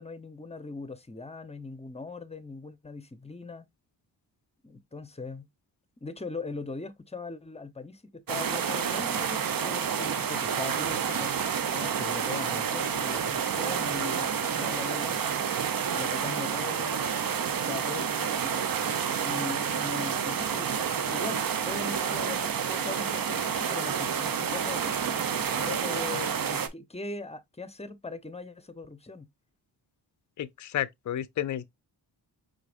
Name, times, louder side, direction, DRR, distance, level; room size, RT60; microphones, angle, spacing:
voice 1, 0.0-3.7 4.6-5.5 6.0-11.3 11.7-15.2 15.9-17.1 17.7-18.7 19.2-29.3, left 3 dB, 15° left, 0.8 m, -40 dB
sound 1, 8.3-26.7, right 7 dB, 50° right, 0.8 m, -29 dB
voice 2, 30.4-31.7, left 11 dB, 45° left, 0.5 m, -31 dB
4.7 x 3.9 x 2.5 m
cardioid pair, 65°, 43 cm